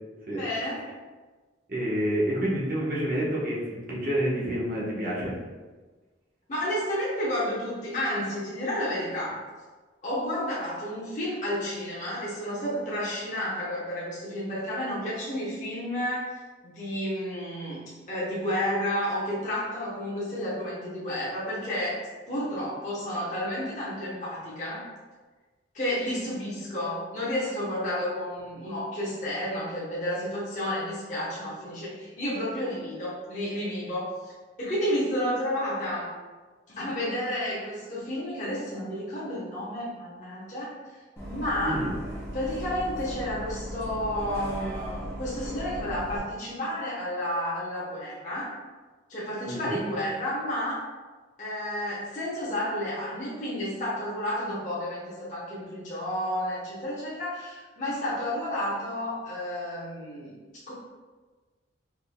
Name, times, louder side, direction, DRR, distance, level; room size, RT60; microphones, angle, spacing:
voice 1, 0.3-0.9 6.5-9.4 10.0-16.2 16.6-22.0 22.3-24.9 25.7-34.3 34.6-36.1 36.7-40.7 41.3-41.9 42.3-48.5 49.1-50.9 51.4-60.7, left 1 dB, 40° left, -8 dB, 1.0 m, -31 dB
voice 2, 1.7-5.3 41.6-41.9 49.5-49.8, right 1 dB, 50° right, -6 dB, 1.1 m, -28 dB
Bus, 41.2-46.2, equal, 15° left, 0.9 m, -37 dB
4.5 x 3.8 x 2.2 m, 1.3 s
head